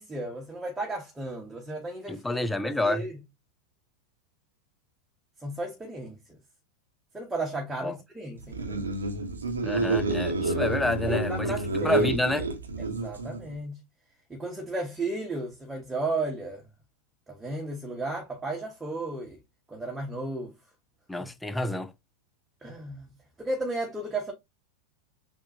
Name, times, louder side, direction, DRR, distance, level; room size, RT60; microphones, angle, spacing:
voice 1, 0.0-3.2 5.4-6.2 7.1-8.8 10.8-12.1 12.8-13.8 14.3-16.7 17.3-19.4 19.7-20.5 21.2-21.3 22.6-23.1 23.4-24.3, right 2 dB, 10° right, 1.1 m, -34 dB
voice 2, 2.1-3.0 7.8-7.9 9.6-11.6 11.8-12.5 21.1-21.9, left 2 dB, 5° left, 0.5 m, -28 dB
sound 1, 8.4-13.5, right 3 dB, 75° right, 0.9 m, -29 dB
7.0 x 2.4 x 2.8 m
figure-of-eight pair, 90°, 0 cm